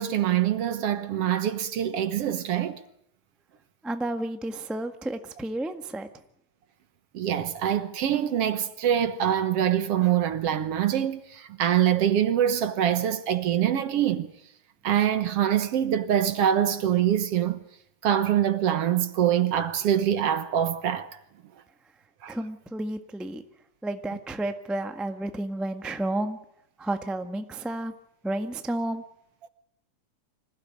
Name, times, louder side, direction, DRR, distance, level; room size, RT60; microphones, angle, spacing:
voice 1, 0.0-2.8 7.1-14.3 14.8-17.6 18.0-21.1 22.2-22.4, right 10 dB, 60° right, 1.9 m, -24 dB
voice 2, 3.8-6.1 22.3-23.4 23.8-26.4 26.8-27.9 28.2-29.0, right 1 dB, ahead, 0.4 m, -31 dB
26.0 x 16.0 x 9.6 m
omnidirectional pair, 3.4 m